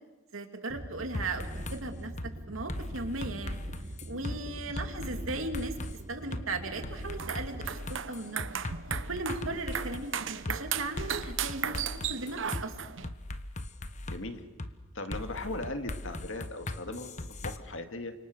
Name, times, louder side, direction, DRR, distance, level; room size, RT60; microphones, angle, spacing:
voice 1, 0.3-2.1 2.5-3.6 4.1-5.8 6.1-8.6 9.1-12.7, right 2 dB, 80° right, 5 dB, 2.9 m, -37 dB
sound 1, 0.7-7.8, right 1 dB, 40° right, 1.4 m, -43 dB
sound 2, 1.1-1.8 2.2-2.3 2.7-4.4 4.8-5.9 6.3-6.4 6.8-10.1 10.5-10.6 11.0-12.6 13.0-14.2 14.6-14.7 15.1-17.6, left 1 dB, 35° left, 1.2 m, -38 dB
sound 3, 7.1-13.1, right 8 dB, 60° right, 1.0 m, -36 dB
voice 2, 14.1-14.4 14.9-18.1, left 2 dB, 65° left, 6 dB, 2.2 m, -38 dB
29.5 x 26.0 x 6.6 m, 1.2 s
head